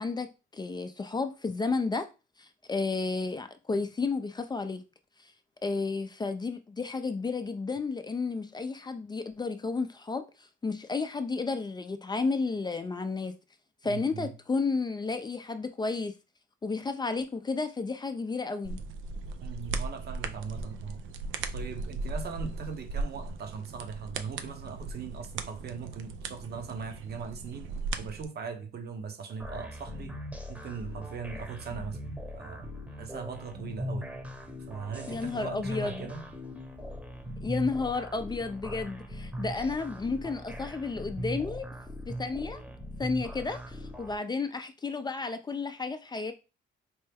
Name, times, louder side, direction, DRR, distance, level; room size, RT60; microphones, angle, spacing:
voice 1, 0.0-2.1 2.4-4.8 5.6-13.4 13.8-16.1 16.6-18.8 35.1-36.1 37.4-41.7 42.1-42.6 43.0-46.3, left 4 dB, 20° left, 0.4 m, -32 dB
voice 2, 13.8-14.3 19.4-21.0 21.5-27.7 28.0-30.2 30.5-34.1 34.7-36.3, right 6 dB, 55° right, 0.9 m, -40 dB
sound 1, 18.6-28.2, right 3 dB, 80° right, 0.5 m, -37 dB
sound 2, 29.4-44.2, equal, 5° right, 0.9 m, -40 dB
4.4 x 2.1 x 3.4 m
cardioid pair, 90°, 20 cm